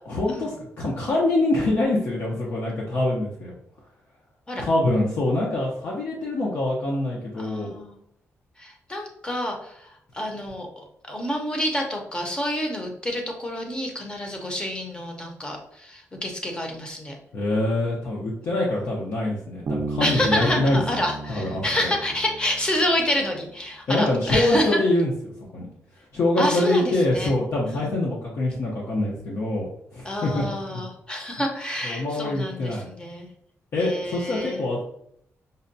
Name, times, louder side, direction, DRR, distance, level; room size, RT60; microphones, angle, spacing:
voice 1, 0.1-3.5 4.6-7.7 17.3-20.8 21.3-21.9 23.9-25.1 25.5-25.7 26.1-30.8 31.8-32.9 33.7-34.8, left 1 dB, 60° left, -4 dB, 0.7 m, -24 dB
voice 2, 7.4-8.0 8.6-17.2 20.0-24.8 26.4-27.3 27.7-27.9 30.0-33.3 33.8-34.6, left 1 dB, 20° left, 2 dB, 0.7 m, -28 dB
Bass guitar, 19.7-23.2, right 3 dB, 50° right, 0.4 m, -34 dB
5.3 x 2.2 x 2.6 m, 0.70 s
wide cardioid pair, 145°, 5 cm